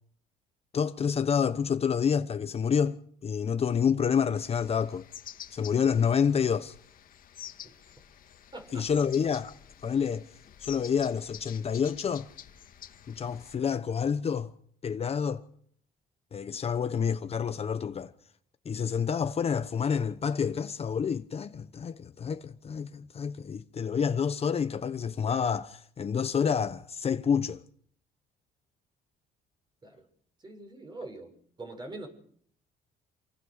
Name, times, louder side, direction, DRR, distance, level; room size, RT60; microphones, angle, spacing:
voice 1, 0.7-5.0 5.5-6.7 8.7-9.5 9.8-10.2 10.6-12.3 13.1-14.5 14.8-15.4 16.3-18.1 18.6-27.6, left 7 dB, 35° left, 1.0 m, -28 dB
sound 1, 4.4-13.6, left 10 dB, 55° left, 2.1 m, -49 dB
voice 2, 8.5-8.9 29.8-30.1 30.4-31.3 31.6-32.1, right 2 dB, 25° right, 6.6 m, -43 dB
28.0 x 19.0 x 6.6 m
cardioid pair, 110°, 17 cm